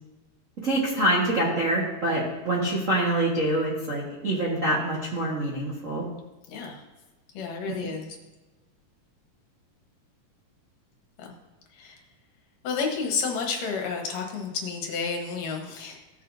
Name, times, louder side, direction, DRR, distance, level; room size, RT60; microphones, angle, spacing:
voice 1, 0.6-6.1 7.6-7.7, right 1 dB, 55° right, -5 dB, 0.8 m, -25 dB
voice 2, 6.5-6.8 7.3-8.1 11.2-11.3 11.8-12.0 12.6-16.0, left 5 dB, 75° left, 1 dB, 2.8 m, -30 dB
16.0 x 6.5 x 2.7 m, 1.2 s
omnidirectional pair, 3.9 m